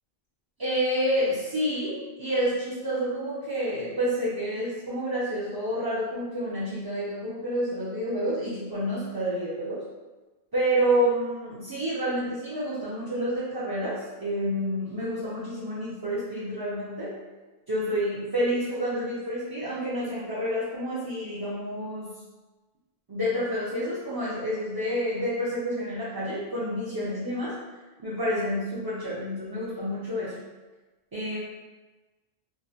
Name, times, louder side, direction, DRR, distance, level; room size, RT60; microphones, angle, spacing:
voice 1, 0.6-9.8 10.5-17.1 17.7-22.1 23.1-27.5 28.0-30.3 31.1-31.4, equal, 35° right, -10 dB, 0.4 m, -29 dB
2.6 x 2.1 x 2.7 m, 1.2 s
omnidirectional pair, 1.0 m